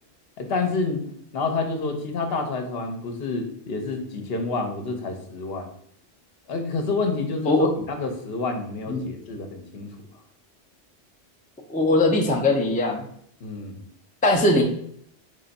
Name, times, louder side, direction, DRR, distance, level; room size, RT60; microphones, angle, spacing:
voice 1, 0.4-1.1 1.3-5.7 6.5-9.9 13.4-13.8, left 3 dB, 65° left, 5 dB, 0.9 m, -28 dB
voice 2, 11.7-13.0 14.2-14.6, left 2 dB, 10° left, 1 dB, 0.4 m, -20 dB
3.6 x 3.3 x 4.0 m, 0.68 s
omnidirectional pair, 1.2 m